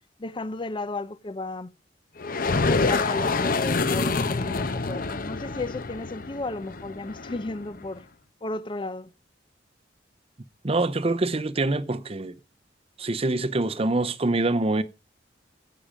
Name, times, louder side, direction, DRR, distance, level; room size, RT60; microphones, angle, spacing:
voice 1, 0.2-1.7 2.5-8.1 8.4-9.1, left 2 dB, 25° left, 0.6 m, -34 dB
sound 1, 2.2-7.9, left 3 dB, 50° left, 0.9 m, -27 dB
voice 2, 10.6-12.4 13.0-14.8, right 2 dB, 30° right, 0.7 m, -25 dB
10.5 x 8.8 x 5.0 m
head